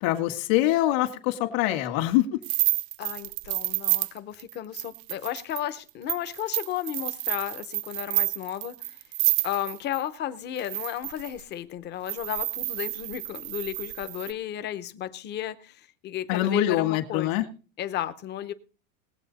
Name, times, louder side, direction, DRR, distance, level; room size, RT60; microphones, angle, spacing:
voice 1, 0.0-2.4 16.3-17.4, left 14 dB, 65° left, 1.9 m, -24 dB
sound 1, 2.4-10.0 10.6-11.4 12.1-14.3, right 19 dB, 60° right, 0.5 m, -29 dB
voice 2, 3.0-8.8 9.4-17.3 17.8-18.5, left 11 dB, 25° left, 0.7 m, -34 dB
20.0 x 8.0 x 4.1 m
supercardioid pair, 165°, 45 cm